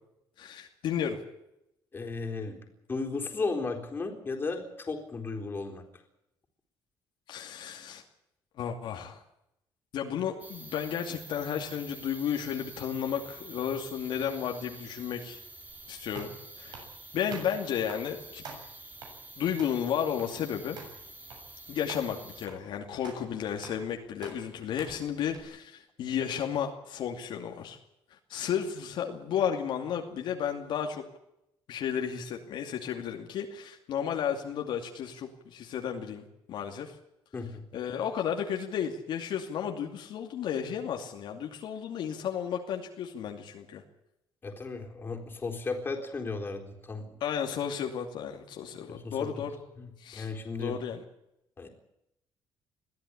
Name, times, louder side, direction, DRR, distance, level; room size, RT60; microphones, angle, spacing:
voice 1, 0.4-1.2 7.3-8.0 8.6-9.2 9.9-15.4 15.9-16.3 16.6-16.8 17.1-18.4 19.4-20.8 21.7-27.8 28.3-31.0 31.7-36.9 37.7-43.8 47.2-49.6 50.0-50.3 50.6-51.0, left 8 dB, 70° left, 3 dB, 2.6 m, -33 dB
voice 2, 1.9-2.6 2.9-5.8 37.3-37.6 44.4-47.2 48.9-49.4 49.8-50.8 51.6-51.7, left 3 dB, 25° left, 2 dB, 4.0 m, -35 dB
sound 1, 10.4-22.5, right 2 dB, 20° right, 3.7 m, -48 dB
sound 2, 15.7-25.4, right 4 dB, 55° right, 7.1 m, -49 dB
22.0 x 14.0 x 10.0 m, 0.83 s
cardioid pair, 145°, 9 cm